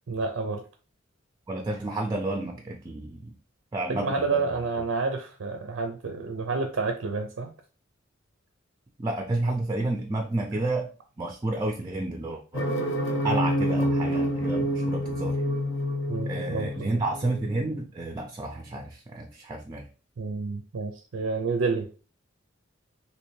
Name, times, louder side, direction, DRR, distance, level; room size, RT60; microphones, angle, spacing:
voice 1, 0.1-0.6 3.9-7.5 16.1-17.0 20.2-21.9, right 4 dB, 80° right, 5 dB, 0.5 m, -29 dB
voice 2, 1.5-3.4 3.7-4.4 9.0-10.9 11.2-12.6 13.2-15.4 16.3-19.9, right 2 dB, 20° right, 3 dB, 0.4 m, -30 dB
sound 1, 12.5-17.6, equal, 80° left, 1.0 m, -27 dB
3.2 x 2.9 x 3.1 m, 0.36 s
head